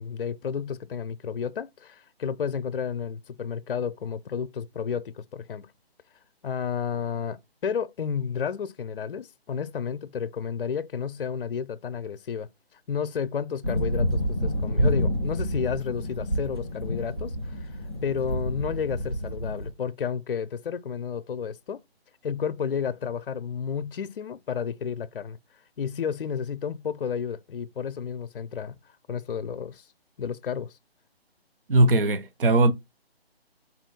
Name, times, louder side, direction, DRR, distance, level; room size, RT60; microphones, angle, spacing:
voice 1, 0.0-5.7 6.4-12.5 12.9-21.8 22.2-25.4 25.8-28.8 29.1-29.8 30.2-30.7, left 7 dB, 60° left, 0.5 m, -31 dB
sound 1, 13.6-19.7, equal, 25° right, 0.4 m, -28 dB
voice 2, 31.7-32.7, right 2 dB, 60° right, 0.7 m, -19 dB
4.0 x 2.1 x 4.3 m
figure-of-eight pair, 160°, 31 cm